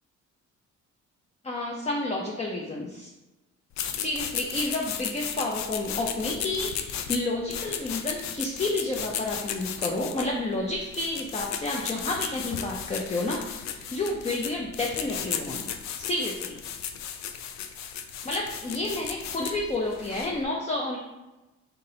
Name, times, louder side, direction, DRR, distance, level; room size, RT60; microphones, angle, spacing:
voice 1, 1.4-3.1 3.9-15.7 16.0-16.6 18.2-21.0, left 2 dB, 20° left, -1 dB, 0.6 m, -30 dB
sound 1, 3.7-20.4, left 8 dB, 65° left, 0.5 m, -35 dB
3.7 x 2.8 x 3.9 m, 1.0 s
cardioid pair, 90°, 30 cm